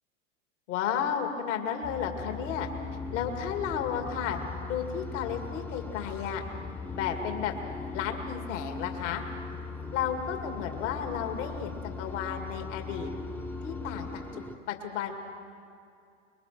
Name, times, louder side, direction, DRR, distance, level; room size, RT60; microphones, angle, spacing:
voice 1, 0.7-2.7 3.1-4.4 4.7-6.4 6.9-7.6 7.9-9.2 9.9-13.1 13.6-15.1, left 8 dB, 70° left, 4 dB, 2.4 m, -33 dB
sound 1, 1.8-14.1, left 6 dB, 35° left, 1.1 m, -41 dB
sound 2, 2.2-14.6, left 2 dB, 5° left, 0.5 m, -42 dB
25.5 x 22.5 x 6.2 m, 2.5 s
hypercardioid pair, 115°, 39 cm